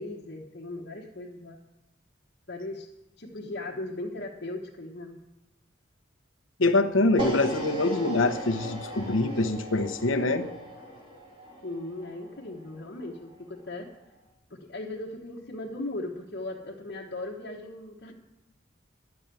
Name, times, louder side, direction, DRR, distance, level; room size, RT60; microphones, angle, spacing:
voice 1, 0.0-1.6 2.5-2.9 3.2-5.2 10.2-10.4 11.6-13.9 14.5-18.1, left 2 dB, 55° left, -3 dB, 1.2 m, -38 dB
voice 2, 6.6-10.4, left 2 dB, 85° left, 6 dB, 0.9 m, -24 dB
sound 1, 7.2-13.3, right 1 dB, 25° right, 2.3 m, -38 dB
11.0 x 6.9 x 8.9 m, 0.93 s
head